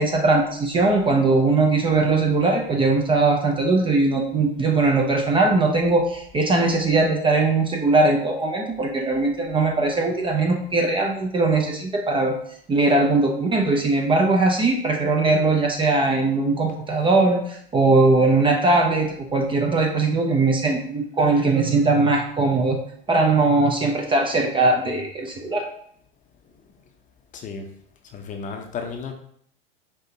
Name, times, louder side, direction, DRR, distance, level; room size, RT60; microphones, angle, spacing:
voice 1, 0.0-12.3 12.7-22.8 23.1-25.6, right 3 dB, 15° right, 1 dB, 0.5 m, -20 dB
voice 2, 28.1-29.1, left 5 dB, 25° left, 4 dB, 0.7 m, -32 dB
5.4 x 2.8 x 2.8 m, 0.64 s
hypercardioid pair, 105°, 30 cm